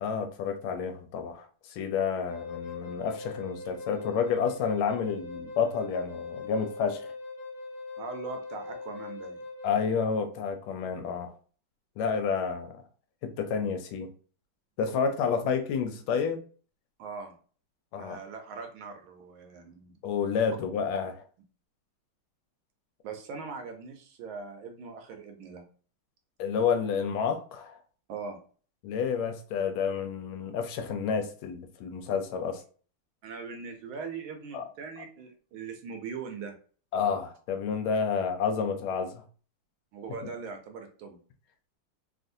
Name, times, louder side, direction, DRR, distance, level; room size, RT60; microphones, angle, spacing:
voice 1, 0.0-7.1 9.6-11.3 12.0-12.8 13.2-14.1 14.8-16.4 17.9-18.2 20.0-21.2 26.4-27.8 28.8-32.6 34.5-34.6 36.9-39.2, left 6 dB, 80° left, 1.4 m, -30 dB
Wind instrument woodwind instrument, 2.1-10.0, left 3 dB, 45° left, 0.8 m, -41 dB
voice 2, 8.0-9.4 15.2-15.4 17.0-17.3 17.9-19.9 23.0-25.6 28.1-28.4 33.2-36.5 39.9-41.2, right 5 dB, 75° right, 1.4 m, -41 dB
3.5 x 2.5 x 2.6 m
omnidirectional pair, 2.3 m